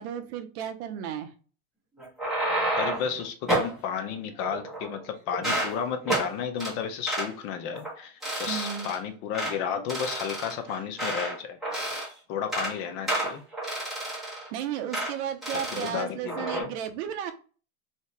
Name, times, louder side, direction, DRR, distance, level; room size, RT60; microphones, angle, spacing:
voice 1, 0.0-1.3 8.5-8.9 14.5-17.3, right 9 dB, 50° right, 7 dB, 0.7 m, -34 dB
sound 1, 2.0-3.1 3.5-3.7 4.4-5.0 5.3-5.7 6.1-6.3 6.6-6.7 7.1-7.3 7.7-7.9 8.2-9.0 9.3-9.5 9.9-11.3 11.6-12.1 12.4-12.7 13.1-14.5 14.9-15.1 15.4-15.9 16.3-16.6, right 1 dB, ahead, 1.3 m, -30 dB
voice 2, 2.8-11.6 12.3-13.4 15.5-16.7, left 7 dB, 30° left, 7 dB, 0.4 m, -33 dB
2.8 x 2.8 x 3.2 m, 0.39 s
supercardioid pair, 145°, 42 cm